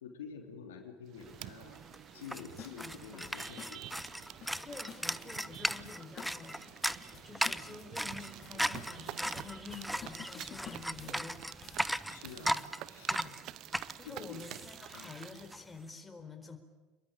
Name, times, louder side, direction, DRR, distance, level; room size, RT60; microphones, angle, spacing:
voice 1, 0.0-1.8 2.1-3.8 12.1-12.5 12.8-13.3 14.0-14.5 14.9-15.1, left 6 dB, 75° left, 3 dB, 3.4 m, -48 dB
sound 1, 1.1-15.5, right 14 dB, 50° right, 0.8 m, -49 dB
sound 2, 1.4-1.5 1.7-15.6, equal, ahead, 0.9 m, -37 dB
sound 3, 2.6-12.7, left 8 dB, 40° left, 2.5 m, -52 dB
voice 2, 2.8-3.3 4.5-6.6 7.2-11.4 12.4-12.6 13.1-13.4 14.0-16.6, left 4 dB, 15° left, 6 dB, 4.3 m, -49 dB
28.0 x 22.5 x 9.0 m, 1.2 s
figure-of-eight pair, 70°, 0 cm